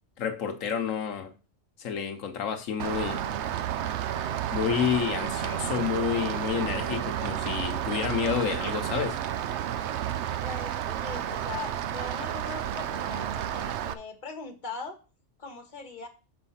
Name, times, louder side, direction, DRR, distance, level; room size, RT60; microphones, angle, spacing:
voice 1, 0.2-1.3 1.8-3.2 4.5-9.2, left 7 dB, 85° left, 1.3 m, -29 dB
Rain, 2.8-13.9, right 10 dB, 70° right, 0.8 m, -31 dB
voice 2, 10.4-15.0 15.4-16.1, left 4 dB, 40° left, 1.4 m, -40 dB
6.3 x 5.5 x 5.6 m
omnidirectional pair, 1.3 m